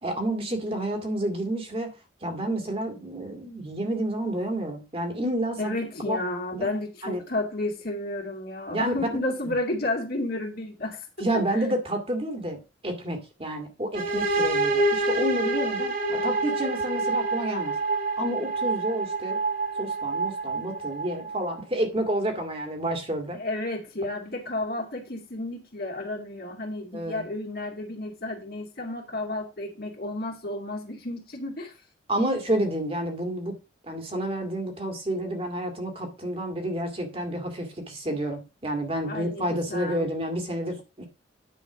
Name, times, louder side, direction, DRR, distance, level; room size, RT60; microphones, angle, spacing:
voice 1, 0.0-1.9 2.2-5.7 6.1-6.2 6.5-6.7 7.0-7.2 8.7-9.1 9.4-9.6 11.2-17.7 18.2-19.4 19.8-23.4 26.9-27.2 32.1-33.6 33.8-41.1, right 1 dB, 30° right, 2.0 m, -29 dB
voice 2, 5.6-11.0 11.3-11.4 23.4-31.7 39.0-40.1, left 2 dB, 55° left, 2.3 m, -32 dB
sound 1, 13.9-21.6, right 2 dB, 50° right, 2.6 m, -27 dB
9.9 x 4.7 x 6.1 m
head